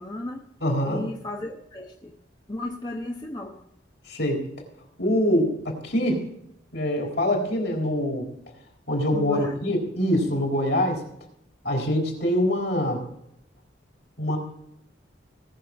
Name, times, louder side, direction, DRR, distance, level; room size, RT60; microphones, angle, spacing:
voice 1, 0.0-0.5 0.8-2.1 2.5-3.6 9.1-9.6, left 2 dB, 20° left, 1 dB, 1.0 m, -34 dB
voice 2, 0.6-1.0 4.1-4.5 5.0-6.3 6.7-8.3 8.9-11.0 11.6-13.0 14.2-14.4, equal, 60° left, 0 dB, 4.0 m, -24 dB
19.0 x 6.9 x 4.6 m, 0.78 s
head